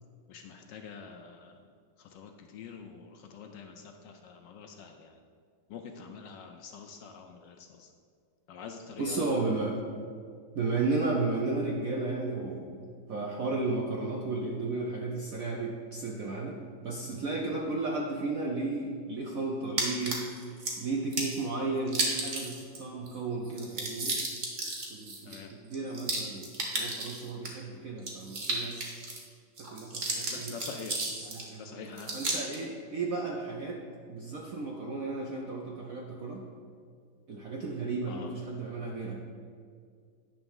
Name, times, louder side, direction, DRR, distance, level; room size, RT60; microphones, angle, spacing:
voice 1, 0.3-1.6 2.0-5.2 5.7-7.9 8.5-9.6 25.3-25.5 30.3-31.0 31.6-32.2 38.1-38.3, left 6 dB, 70° left, 4 dB, 1.1 m, -46 dB
voice 2, 9.0-9.8 10.5-12.7 13.1-24.2 24.9-28.8 29.6-30.5 31.2-33.8 34.1-36.4 37.3-39.2, right 3 dB, 65° right, -1 dB, 0.8 m, -34 dB
sound 1, 19.8-20.7 21.1-21.4 21.9-22.8 23.1-23.2 23.4-27.5 28.0-29.2 29.6-31.5 32.0-32.6, right 2 dB, 45° right, 1.5 m, -33 dB
10.0 x 3.5 x 7.1 m, 2.1 s
omnidirectional pair, 2.3 m